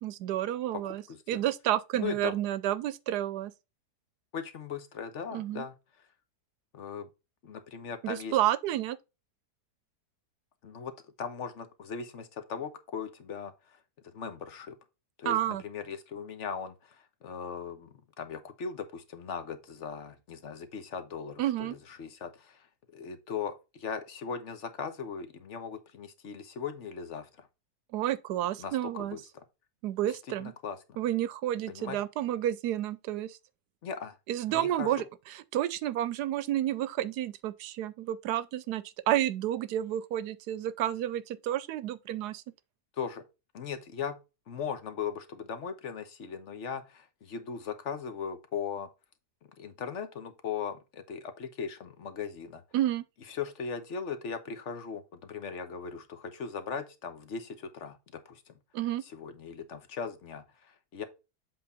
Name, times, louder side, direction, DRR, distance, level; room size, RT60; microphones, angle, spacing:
voice 1, 0.0-3.5 5.3-5.7 8.0-9.0 15.2-15.6 21.4-21.7 27.9-29.2 29.8-30.5 31.0-33.4 34.3-42.4 52.7-53.0 58.7-59.0, right 12 dB, 85° right, 1.2 m, -30 dB
voice 2, 1.1-1.4 2.0-2.3 4.3-5.7 6.7-7.1 7.4-8.4 10.6-10.9 11.2-13.8 14.1-14.7 15.2-22.7 22.9-27.5 28.6-29.2 30.1-31.0 31.7-32.0 33.8-34.2 34.5-35.0 43.0-43.2 43.5-44.2 44.5-48.9 49.6-52.6 53.3-58.0 58.3-58.6 59.1-61.0, left 6 dB, 50° left, 1.1 m, -38 dB
7.8 x 3.7 x 4.1 m
omnidirectional pair, 1.7 m